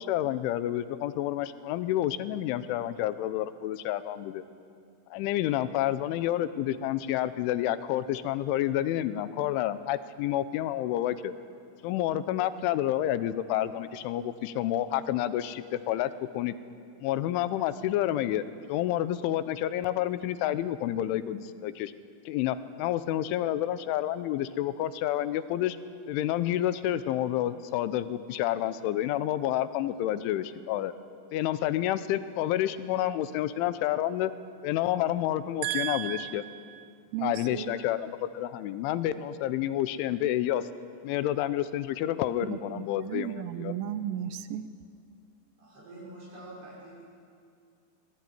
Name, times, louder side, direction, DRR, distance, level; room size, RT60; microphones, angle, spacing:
voice 1, 0.0-4.4 5.1-11.3 11.8-16.6 17.0-18.4 18.7-21.9 22.3-25.8 26.1-30.9 31.3-34.3 34.6-36.4 37.2-40.6 41.0-43.7, left 12 dB, 85° left, 13 dB, 3.2 m, -29 dB
voice 2, 35.6-37.8 42.5-44.7, right 11 dB, 85° right, 12 dB, 3.3 m, -35 dB
voice 3, 45.6-47.0, right 1 dB, 60° right, -6 dB, 8.6 m, -46 dB
24.0 x 20.0 x 9.4 m, 2.3 s
omnidirectional pair, 5.5 m